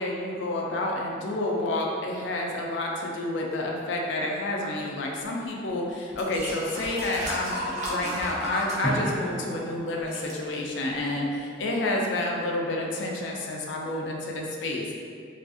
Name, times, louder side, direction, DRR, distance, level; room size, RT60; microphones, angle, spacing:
voice 1, 0.0-14.9, left 2 dB, 80° left, -1 dB, 0.4 m, -29 dB
sound 1, 5.5-5.6 6.1-9.6 9.9-10.3 11.0-11.1, equal, 40° right, 0.5 m, -34 dB
Drum, 8.8-11.1, right 1 dB, 10° left, 0.4 m, -34 dB
2.4 x 2.4 x 2.4 m, 2.3 s
head